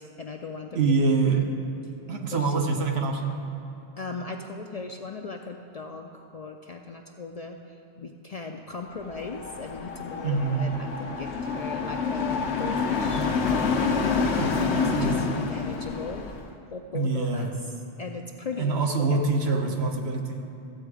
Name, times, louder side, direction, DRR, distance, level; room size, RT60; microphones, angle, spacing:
voice 1, 0.0-0.9 2.3-2.7 4.0-7.6 8.0-13.3 14.9-16.3 16.7-17.7 18.0-19.2, left 4 dB, 50° left, 3 dB, 0.5 m, -38 dB
voice 2, 0.7-1.5 2.1-3.4 10.2-10.7 14.2-15.2 16.9-17.5 18.6-20.4, right 4 dB, 70° right, 3 dB, 1.2 m, -25 dB
sound 1, 9.0-16.5, left 5 dB, 85° left, 1.2 m, -27 dB
14.0 x 7.8 x 4.8 m, 2.8 s
omnidirectional pair, 1.1 m